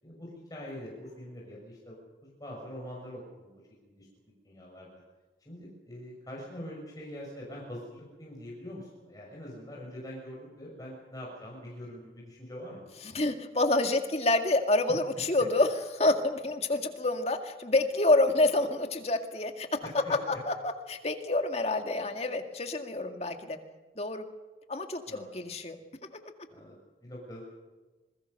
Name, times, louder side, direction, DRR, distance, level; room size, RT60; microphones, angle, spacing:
voice 1, 0.0-3.5 3.8-4.1 4.4-4.9 5.4-12.9 19.8-20.4 25.1-25.4 26.5-27.4, equal, 20° left, -3 dB, 6.0 m, -44 dB
voice 2, 13.1-19.7 20.3-23.6 24.0-24.2 24.7-25.8, left 2 dB, 35° left, 6 dB, 2.1 m, -28 dB
27.0 x 21.0 x 6.7 m, 1.2 s
head